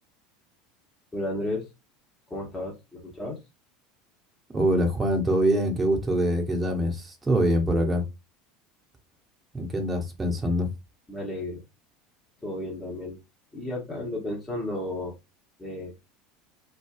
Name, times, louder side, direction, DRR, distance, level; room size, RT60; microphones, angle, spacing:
voice 1, 1.1-1.7 2.3-3.4 11.1-11.6 12.4-13.2 13.5-15.2 15.6-15.9, left 1 dB, 15° left, 1.0 m, -33 dB
voice 2, 4.5-8.0 9.5-10.7, equal, 15° right, 1.0 m, -24 dB
3.3 x 2.2 x 2.3 m
figure-of-eight pair, 70°, 0 cm